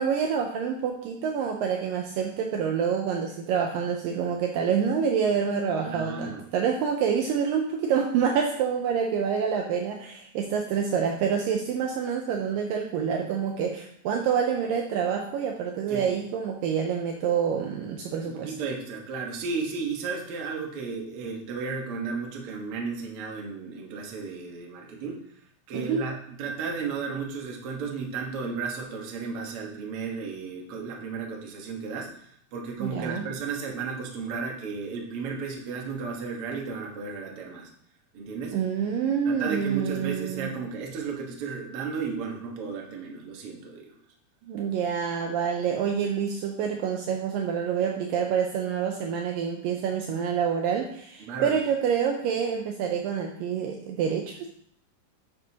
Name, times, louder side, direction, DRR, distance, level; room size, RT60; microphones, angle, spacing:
voice 1, 0.0-18.5 25.7-26.0 32.8-33.3 38.5-40.6 44.4-54.5, right 7 dB, 80° right, 2 dB, 2.1 m, -27 dB
voice 2, 5.8-6.4 15.9-16.0 18.2-25.2 25.7-37.7 38.1-38.6 39.2-44.0 51.2-51.6, right 5 dB, 60° right, -1 dB, 1.5 m, -34 dB
11.0 x 6.5 x 2.9 m, 0.66 s
omnidirectional pair, 4.5 m